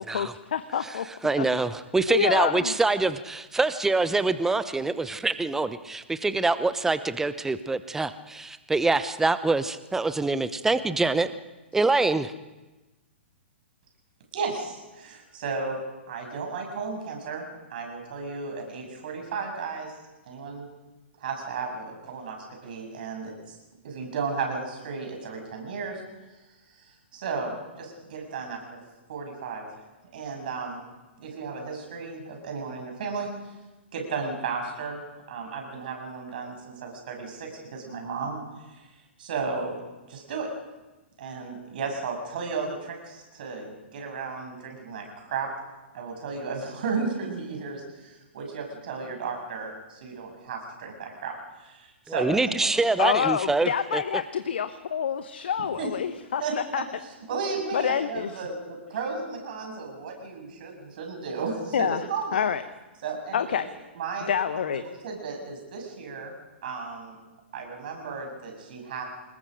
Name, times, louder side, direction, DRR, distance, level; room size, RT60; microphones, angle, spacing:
voice 1, 0.0-1.1 1.4-1.5 2.1-2.7 53.0-56.8 57.7-58.4 61.7-62.0 62.3-62.6 63.3-63.7 64.3-64.8, left 8 dB, 55° left, 11 dB, 1.1 m, -27 dB
voice 2, 1.2-11.3 11.7-12.3 52.1-54.0, right 3 dB, 5° right, 13 dB, 0.9 m, -25 dB
voice 3, 14.3-15.8 16.1-17.4 17.7-19.9 20.3-20.7 21.2-22.4 22.6-23.6 23.8-26.0 26.7-28.8 29.1-29.7 30.1-30.8 31.2-33.3 33.9-35.0 35.3-38.4 39.2-39.8 40.1-40.5 41.2-45.5 45.9-51.3 51.6-52.2 52.5-52.7 55.8-55.9 56.4-62.4 63.0-63.6 64.0-66.3 66.6-67.2 67.5-69.0, right 4 dB, 50° right, 2 dB, 7.2 m, -34 dB
28.5 x 20.5 x 5.1 m, 1.1 s
figure-of-eight pair, 110°, 6 cm